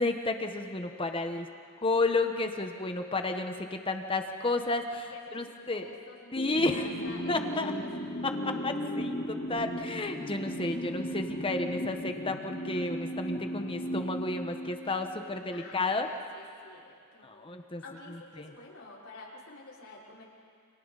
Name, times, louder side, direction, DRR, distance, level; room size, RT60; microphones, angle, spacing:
voice 1, 0.0-1.5 1.8-5.9 6.3-6.8 7.3-7.7 8.2-16.1 17.2-17.8 18.1-18.5, left 2 dB, 25° left, 6 dB, 1.3 m, -32 dB
voice 2, 5.1-7.3 7.6-8.1 15.2-17.5 17.8-20.3, left 2 dB, 85° left, -6 dB, 5.5 m, -49 dB
sound 1, 6.4-15.4, equal, 55° left, 3.8 m, -36 dB
29.5 x 27.5 x 4.2 m, 2.3 s
head